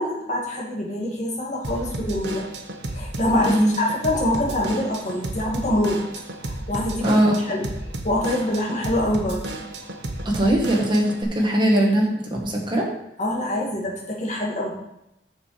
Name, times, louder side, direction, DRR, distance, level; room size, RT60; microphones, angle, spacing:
voice 1, 0.0-2.5 2.9-6.0 6.4-7.2 7.5-7.7 8.0-9.4 13.2-14.7, left 1 dB, 40° left, -3 dB, 2.0 m, -25 dB
Drum kit / Drum, 1.6-11.2, right 1 dB, 80° right, 1.1 m, -33 dB
voice 2, 7.0-7.3 10.3-12.9, right 1 dB, 25° right, -1 dB, 1.8 m, -20 dB
6.8 x 6.8 x 4.9 m, 0.85 s
head